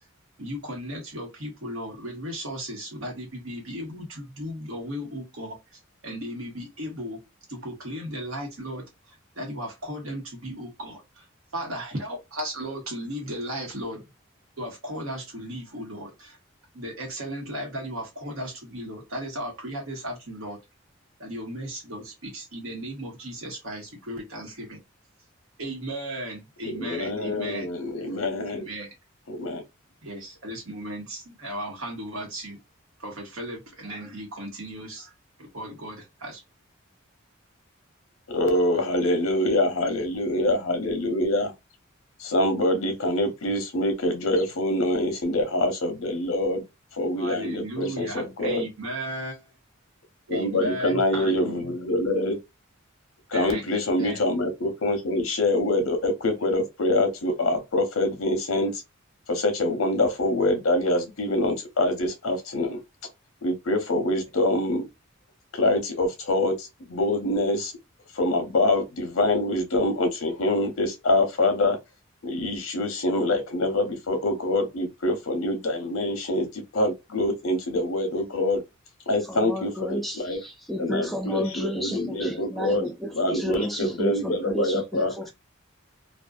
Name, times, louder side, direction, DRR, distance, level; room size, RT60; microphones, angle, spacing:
voice 1, 0.4-5.6 6.0-7.2 7.5-11.2 11.5-14.0 14.6-16.4 16.7-20.6 21.2-24.8 25.6-27.7 28.5-28.9 30.0-32.6 33.0-35.1 35.4-36.4 47.2-49.5 50.3-51.7 53.3-54.2 81.3-81.4 82.7-82.8 83.5-83.6 84.3-84.4, equal, 75° right, 1.1 m, -36 dB
voice 2, 26.6-28.7 29.3-29.6 38.3-41.5 42.2-46.6 47.0-48.7 50.3-52.4 53.3-58.8 59.3-62.8 63.4-64.8 65.5-67.7 68.1-71.8 72.2-78.6 79.1-80.4 80.8-82.8 83.1-85.1, left 1 dB, 75° left, 0.7 m, -25 dB
voice 3, 79.3-85.3, right 1 dB, ahead, 0.4 m, -32 dB
2.5 x 2.3 x 2.3 m
head